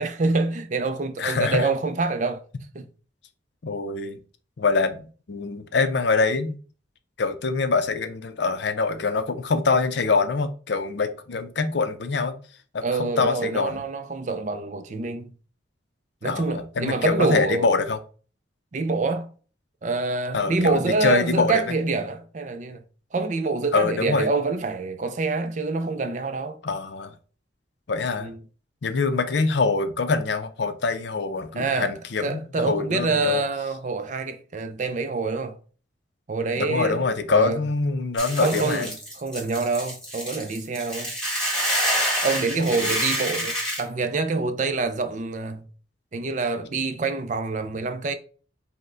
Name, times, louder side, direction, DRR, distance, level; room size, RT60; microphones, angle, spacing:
voice 1, 0.0-2.4 2.7-2.9 12.8-15.3 16.2-17.7 18.7-19.3 19.8-22.8 23.1-26.6 28.2-28.4 31.6-31.9 32.2-35.6 36.3-37.0 37.3-37.6 38.4-41.1 42.2-45.7 46.1-48.1, right 3 dB, 40° right, 0.4 m, -26 dB
voice 2, 1.2-1.7 3.6-4.2 4.6-6.6 7.2-12.3 12.7-13.8 16.2-18.0 20.3-21.6 23.7-24.3 26.6-27.1 27.9-28.3 28.8-33.4 36.6-38.9 42.6-42.9, left 4 dB, 65° left, 0.5 m, -24 dB
Hiss / Boiling, 38.2-43.8, equal, 5° left, 1.4 m, -27 dB
5.4 x 2.2 x 3.7 m
head